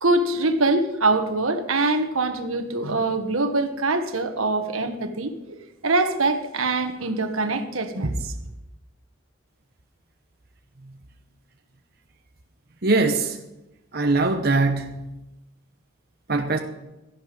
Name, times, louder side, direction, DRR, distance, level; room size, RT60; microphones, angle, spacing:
voice 1, 0.0-8.3, right 2 dB, 80° right, 7 dB, 1.5 m, -24 dB
voice 2, 12.8-13.4 13.9-15.1 16.3-16.6, right 3 dB, 45° right, 4 dB, 1.0 m, -22 dB
17.0 x 11.0 x 5.2 m, 0.97 s
head